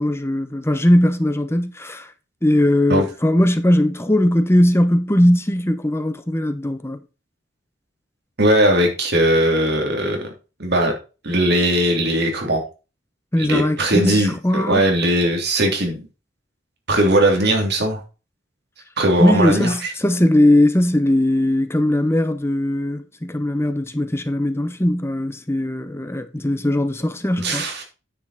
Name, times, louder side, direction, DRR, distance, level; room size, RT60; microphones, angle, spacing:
voice 1, 0.0-2.1 2.4-7.0 13.3-14.8 19.2-27.7, left 1 dB, 15° left, 0.9 m, -19 dB
voice 2, 8.4-10.3 10.6-10.9 11.2-12.6 13.4-16.0 16.9-18.0 19.0-19.9 27.4-27.8, right 1 dB, 60° right, 3.2 m, -19 dB
9.7 x 5.5 x 4.2 m
head